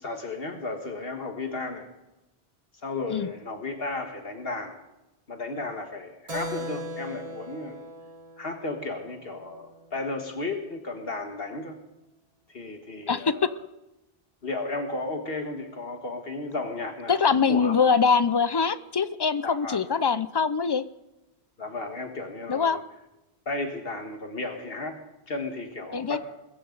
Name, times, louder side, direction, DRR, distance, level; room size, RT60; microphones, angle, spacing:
voice 1, 0.0-1.9 2.8-4.8 5.3-7.9 8.4-11.8 12.5-13.6 14.4-17.8 19.4-19.8 21.6-22.8 23.5-26.2, left 3 dB, 70° left, 5 dB, 1.8 m, -34 dB
Keyboard (musical), 6.3-10.4, equal, 35° right, 1.3 m, -40 dB
voice 2, 13.1-13.5 17.1-20.9 22.5-22.8 25.9-26.2, left 5 dB, 35° left, 15 dB, 0.4 m, -23 dB
21.5 x 14.5 x 3.9 m, 0.96 s
omnidirectional pair, 1.0 m